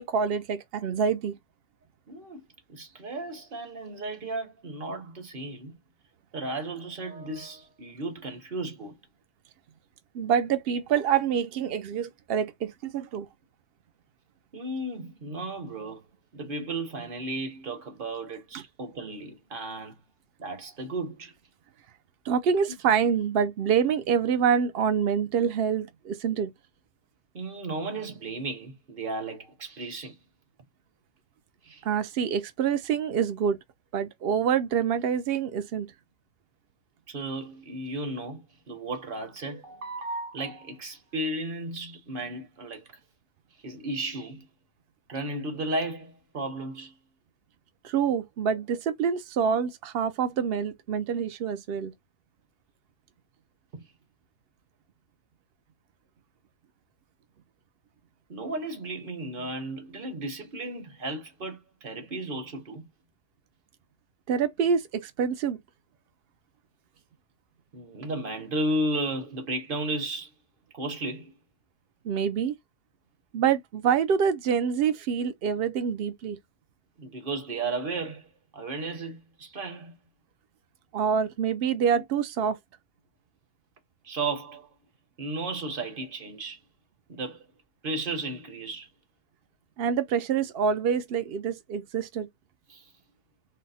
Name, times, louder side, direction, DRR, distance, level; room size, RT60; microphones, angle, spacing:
voice 1, 0.0-1.3 10.1-13.3 18.5-18.6 22.3-26.5 31.8-33.6 33.9-35.9 47.8-51.9 64.3-65.6 72.0-72.5 73.3-76.4 80.9-82.6 89.8-92.3, right 7 dB, 80° right, 0.5 m, -26 dB
voice 2, 2.1-5.8 6.3-8.9 14.5-16.0 16.3-20.0 20.4-21.3 27.3-30.1 31.6-31.8 37.1-42.9 43.6-44.5 45.1-46.9 53.7-53.8 58.3-62.9 67.7-70.3 70.7-71.3 77.0-78.3 78.5-80.0 81.9-82.0 84.0-84.7 85.2-86.6 87.1-87.5 87.8-88.9 90.1-90.2 92.7-92.8, right 2 dB, 40° right, 1.2 m, -34 dB
4.2 x 2.0 x 4.0 m
omnidirectional pair, 1.6 m